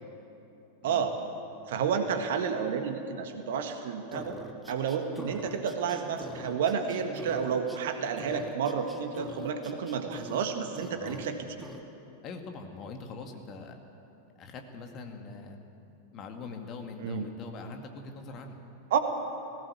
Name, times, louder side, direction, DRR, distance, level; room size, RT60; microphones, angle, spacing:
voice 1, 0.8-1.1 1.7-4.4 4.7-11.7 17.0-17.3 18.9-19.0, right 6 dB, 55° right, 6 dB, 1.7 m, -30 dB
sound 1, 4.1-7.8 8.2-10.5 10.7-11.3 11.6-11.8, equal, ahead, 1.9 m, -44 dB
voice 2, 12.2-13.8 14.4-15.6 16.1-18.6, left 4 dB, 35° left, 4 dB, 2.2 m, -43 dB
19.0 x 16.5 x 8.3 m, 2.8 s
figure-of-eight pair, 90°, 0 cm